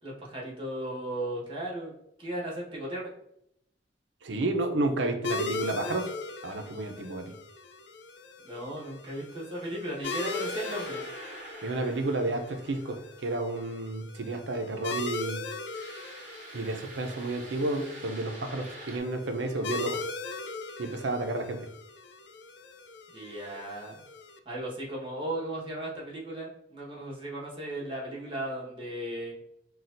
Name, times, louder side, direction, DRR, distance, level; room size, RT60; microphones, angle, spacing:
voice 1, 0.0-1.9 2.2-3.1 8.4-11.0 23.1-23.9 24.4-29.4, right 1 dB, 30° right, -4 dB, 1.3 m, -36 dB
voice 2, 4.2-6.1 6.4-7.3 11.6-15.4 16.5-20.0 20.8-21.7, right 2 dB, 85° right, 5 dB, 0.6 m, -31 dB
sound 1, 5.2-24.4, left 3 dB, 65° left, 0.4 m, -39 dB
sound 2, 10.0-13.4 15.7-19.0, right 2 dB, 45° right, 0.9 m, -46 dB
5.9 x 2.3 x 2.6 m, 0.75 s
head